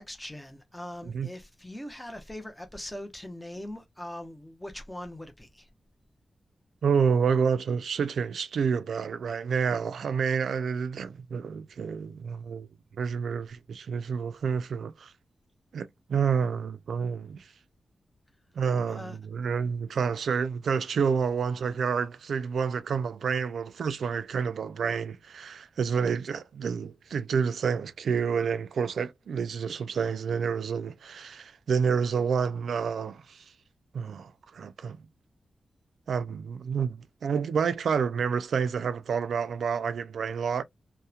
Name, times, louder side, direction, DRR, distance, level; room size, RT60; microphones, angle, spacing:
voice 1, 0.0-5.7 18.9-19.2, left 1 dB, 5° left, 0.6 m, -41 dB
voice 2, 6.8-12.7 13.0-15.1 15.7-17.4 18.6-33.4 33.9-35.0 36.1-40.6, right 6 dB, 85° right, 0.3 m, -29 dB
2.8 x 2.1 x 2.3 m
wide cardioid pair, 130°, 0 cm